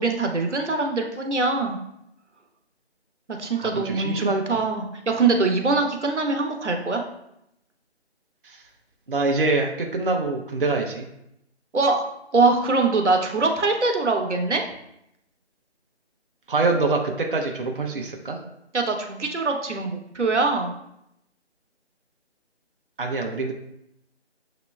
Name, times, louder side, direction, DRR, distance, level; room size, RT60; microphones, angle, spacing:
voice 1, 0.0-1.8 3.4-7.0 11.7-12.0 12.3-14.7 18.7-20.7, right 3 dB, 85° right, 3 dB, 0.9 m, -23 dB
voice 2, 3.6-4.4 8.4-8.6 9.1-11.1 16.5-18.4 23.0-23.5, right 3 dB, 50° right, 2 dB, 0.6 m, -25 dB
6.8 x 2.9 x 2.2 m, 0.80 s
figure-of-eight pair, 160°, 34 cm